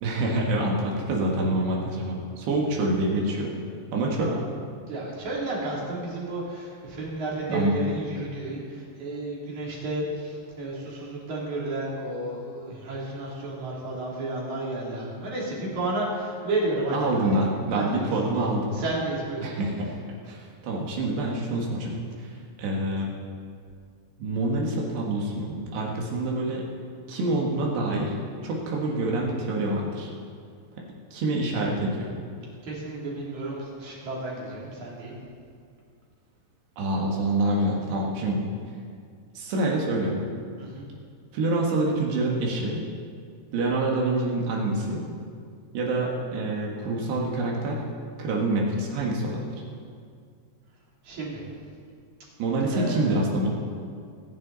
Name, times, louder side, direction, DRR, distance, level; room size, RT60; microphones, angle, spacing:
voice 1, 0.0-3.5 3.9-4.3 7.5-7.7 16.9-18.7 19.4-20.0 20.3-23.1 24.2-26.7 27.1-28.1 28.4-30.1 31.1-32.1 36.8-38.4 39.4-40.2 41.3-42.8 43.5-45.0 45.7-47.8 48.2-49.4 52.4-53.5, right 2 dB, 75° right, -2 dB, 3.8 m, -26 dB
voice 2, 4.9-17.4 17.7-18.5 18.7-19.5 32.6-35.1 40.6-40.9 51.0-51.4 52.7-53.2, right 2 dB, 45° right, -4 dB, 4.0 m, -32 dB
25.0 x 10.5 x 4.0 m, 2.2 s
omnidirectional pair, 5.1 m